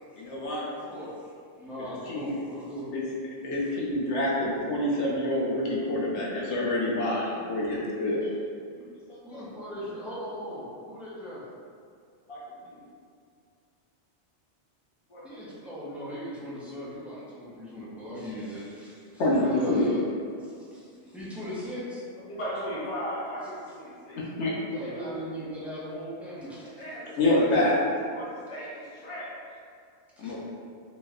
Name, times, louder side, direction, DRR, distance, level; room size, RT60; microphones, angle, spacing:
voice 1, 0.2-0.7 1.8-2.3 2.9-3.0 3.4-8.2 19.2-19.9 24.2-24.5 27.2-27.7 30.2-30.4, left 1 dB, 80° left, -4 dB, 1.0 m, -27 dB
voice 2, 0.8-1.3 1.6-2.9 9.3-11.5 15.2-20.0 20.4-22.0 24.7-26.7 30.2-30.4, equal, ahead, -9 dB, 0.4 m, -38 dB
voice 3, 8.2-10.2 12.3-12.8 15.1-16.0 19.0-20.0 20.7-21.8 22.2-24.2 24.8-25.4 26.6-29.4, equal, 30° left, -9 dB, 0.8 m, -40 dB
3.1 x 2.1 x 3.5 m, 2.2 s
omnidirectional pair, 1.2 m